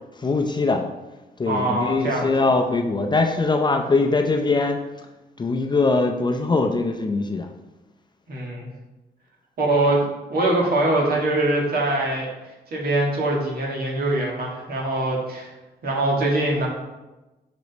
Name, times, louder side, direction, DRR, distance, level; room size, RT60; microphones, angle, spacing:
voice 1, 0.2-0.8 1.4-4.8 5.4-7.5, left 3 dB, 25° left, 4 dB, 0.5 m, -22 dB
voice 2, 1.5-2.3 8.3-8.7 9.6-12.3 12.7-15.5 15.8-16.7, right 2 dB, 60° right, -2 dB, 1.8 m, -23 dB
6.1 x 5.1 x 4.0 m, 1.1 s
wide cardioid pair, 130°, 17 cm